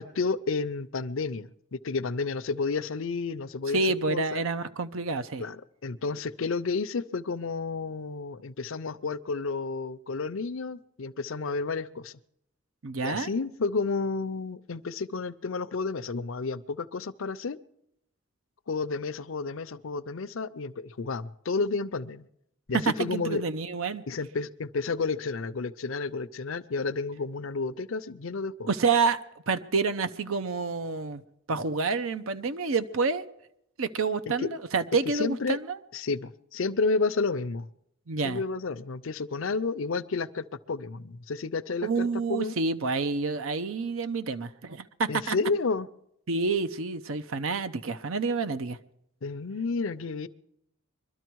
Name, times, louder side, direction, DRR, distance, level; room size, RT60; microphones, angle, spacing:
voice 1, 0.0-3.8 4.1-4.4 5.4-12.1 13.0-17.6 18.7-22.3 22.7-23.4 24.1-28.7 34.3-34.5 35.1-35.6 35.9-37.7 38.2-42.6 45.1-45.9 49.2-50.3, left 4 dB, 75° left, 14 dB, 0.6 m, -31 dB
voice 2, 3.7-5.4 12.8-13.3 22.7-24.0 28.7-29.2 29.5-31.2 31.5-33.3 33.8-35.8 38.1-38.4 41.8-45.4 46.3-48.8, right 4 dB, 85° right, 11 dB, 0.7 m, -28 dB
23.5 x 12.5 x 4.7 m, 0.78 s
head